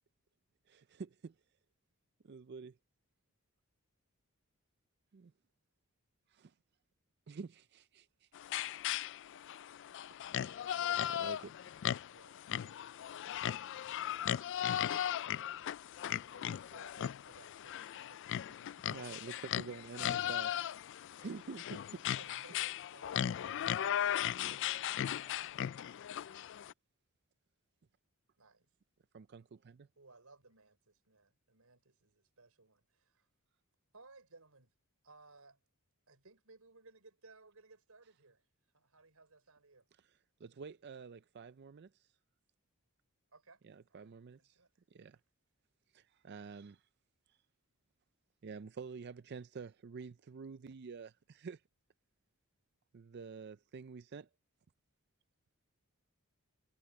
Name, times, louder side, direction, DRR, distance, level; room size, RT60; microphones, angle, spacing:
voice 1, 0.7-1.3 2.2-2.8 5.1-5.3 6.3-6.5 7.3-8.4 10.5-10.7 11.1-11.6 18.9-20.5 21.2-22.0 26.3-26.4 29.1-29.9 40.4-42.1 43.6-44.6 44.9-45.2 45.9-46.8 48.4-51.6 52.9-54.3, right 5 dB, 50° right, 0.4 m, -48 dB
sound 1, 8.4-26.7, left 10 dB, 55° left, 0.3 m, -37 dB
voice 2, 12.0-12.8 13.8-14.2 14.5-15.8 16.0-19.3 20.5-20.6 22.2-23.9 28.4-28.7 30.0-33.3 33.9-34.7 35.0-35.6 36.1-38.5 38.7-39.9 43.3-43.6 43.9-44.1 44.4-44.7 45.0-45.2, right 3 dB, 85° right, 4.6 m, -62 dB
voice 3, 23.4-26.3, left 3 dB, 40° left, 2.9 m, -64 dB
head